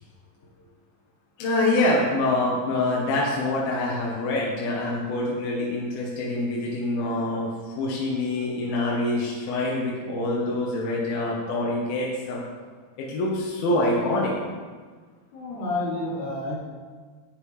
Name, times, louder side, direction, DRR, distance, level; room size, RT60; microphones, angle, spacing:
voice 1, 1.4-12.4 13.0-14.3, left 2 dB, 70° left, -4 dB, 3.2 m, -25 dB
voice 2, 8.3-8.7 15.3-16.6, left 2 dB, 90° left, -6 dB, 5.5 m, -31 dB
10.5 x 9.1 x 4.9 m, 1.5 s
omnidirectional pair, 4.5 m